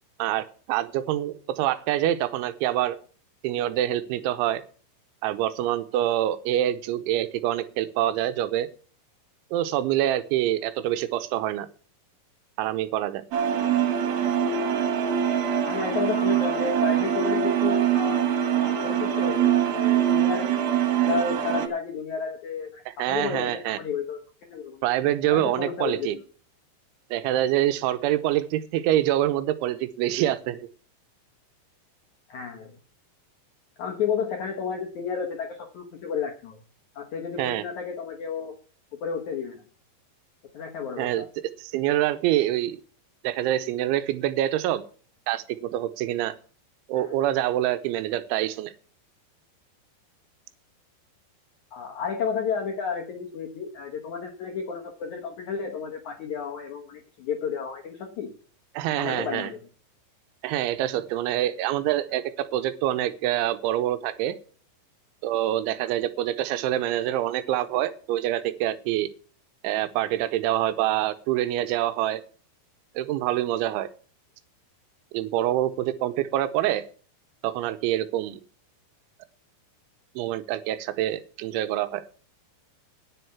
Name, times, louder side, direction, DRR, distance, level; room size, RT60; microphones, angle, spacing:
voice 1, 0.2-3.0 3.4-4.6 5.2-8.7 9.5-11.7 12.6-13.2 22.9-23.8 24.8-26.2 27.1-30.7 37.4-37.6 41.0-41.2 41.6-42.8 43.2-44.8 45.3-46.3 46.9-48.7 58.8-59.5 60.4-64.4 65.2-69.1 69.6-72.2 73.0-73.9 75.1-76.9 77.4-78.4 80.2-82.0, right 13 dB, 85° right, 12 dB, 3.2 m, -26 dB
sound 1, 13.3-21.7, right 9 dB, 65° right, 2.8 m, -23 dB
voice 2, 15.6-18.2 18.6-20.5 21.1-24.2 24.5-24.8 25.3-26.2 32.3-32.8 33.8-36.6 36.9-38.6 38.9-39.6 40.5-41.3 46.9-47.1 51.7-58.3 59.0-59.6, left 6 dB, 75° left, 2 dB, 1.7 m, -32 dB
10.0 x 7.8 x 7.0 m, 0.41 s
omnidirectional pair, 5.4 m